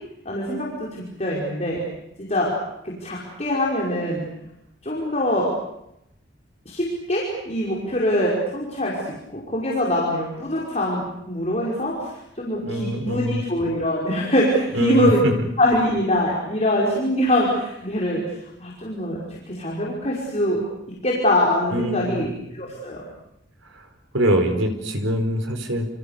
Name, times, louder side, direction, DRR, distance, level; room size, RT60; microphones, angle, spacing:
voice 1, 0.3-1.8 2.2-2.5 2.8-4.2 4.8-5.5 6.7-9.0 9.3-15.2 15.6-20.6 21.0-22.3 22.5-23.0, left 1 dB, 35° left, -4 dB, 5.5 m, -23 dB
voice 2, 12.6-13.4 14.7-15.5 21.7-22.3 23.7-23.9 24.1-25.9, equal, 85° right, 6 dB, 4.7 m, -23 dB
28.5 x 28.0 x 6.9 m, 0.83 s
head